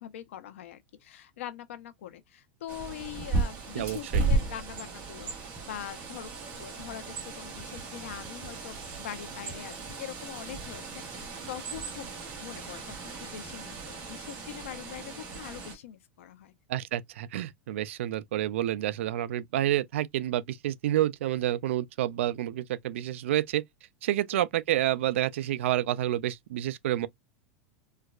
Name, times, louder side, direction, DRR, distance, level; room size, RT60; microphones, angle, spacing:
voice 1, 0.0-6.3 6.6-12.1 12.4-16.5 24.2-24.4, left 11 dB, 85° left, 0.8 m, -43 dB
Bird, 2.7-15.8, right 3 dB, 25° right, 1.2 m, -35 dB
voice 2, 3.7-4.2 16.7-23.6 24.0-27.1, right 13 dB, 75° right, 0.4 m, -29 dB
4.4 x 2.3 x 2.3 m
supercardioid pair, 175°, 7 cm